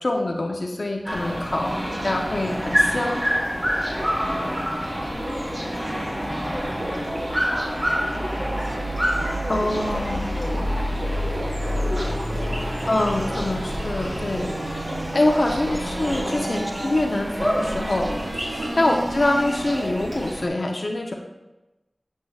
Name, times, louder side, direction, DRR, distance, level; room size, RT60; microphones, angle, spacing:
voice 1, 0.0-1.7 2.0-3.2 9.5-10.2 12.9-14.8 15.1-18.1 18.4-21.1, left 2 dB, 65° left, 1 dB, 0.7 m, -25 dB
sound 1, 1.0-20.5, equal, 20° right, 1.5 m, -28 dB
Sink (filling or washing), 1.1-18.9 20.1-20.2, right 1 dB, 70° right, 2.5 m, -37 dB
voice 2, 1.6-1.9 4.0-9.0 9.3-12.9 14.9-15.1 15.7-15.8 16.4-16.6 18.6-18.8, equal, ahead, 0 dB, 1.1 m, -38 dB
sound 2, 8.4-20.1, right 1 dB, 50° right, 0.5 m, -35 dB
7.8 x 7.2 x 2.4 m, 1.0 s
wide cardioid pair, 60°, 0 cm